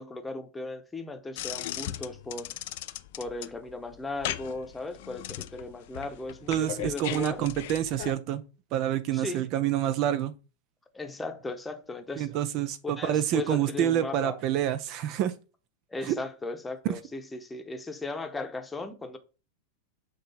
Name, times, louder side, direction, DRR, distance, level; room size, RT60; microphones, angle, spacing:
voice 1, 0.0-2.5 3.2-7.5 9.1-9.5 10.9-12.3 13.0-14.4 15.9-19.2, left 3 dB, 10° left, 0.9 m, -37 dB
sound 1, 1.4-8.2, left 14 dB, 50° left, 0.4 m, -38 dB
voice 2, 6.5-8.4 8.7-10.3 12.2-15.3 16.0-16.1 16.9-17.0, right 11 dB, 40° right, 0.4 m, -27 dB
7.5 x 3.1 x 4.1 m
figure-of-eight pair, 90°, 0 cm